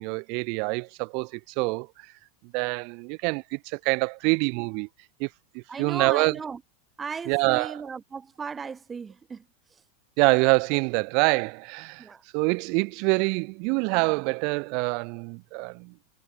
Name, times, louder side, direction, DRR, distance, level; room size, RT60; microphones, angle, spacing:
voice 1, 0.0-1.9 2.5-4.9 5.2-5.3 5.5-6.3 7.3-7.8 10.2-12.0 12.3-15.9, right 34 dB, 45° right, 0.4 m, -25 dB
voice 2, 5.7-6.6 7.0-9.4 12.0-12.2, right 5 dB, 15° right, 1.2 m, -36 dB
supercardioid pair, 165°, 0 cm